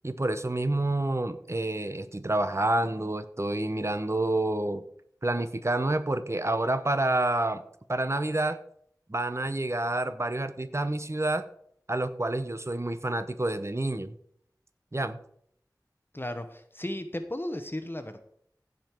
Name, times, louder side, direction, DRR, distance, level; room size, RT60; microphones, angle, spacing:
voice 1, 0.0-4.8 5.2-7.6 7.9-8.6 9.1-11.5 11.9-14.2 14.9-15.2, right 2 dB, 40° right, 11 dB, 0.8 m, -28 dB
voice 2, 16.1-18.2, left 1 dB, 30° left, 8 dB, 0.9 m, -35 dB
15.5 x 5.2 x 4.5 m, 0.66 s
wide cardioid pair, 40°, 7 cm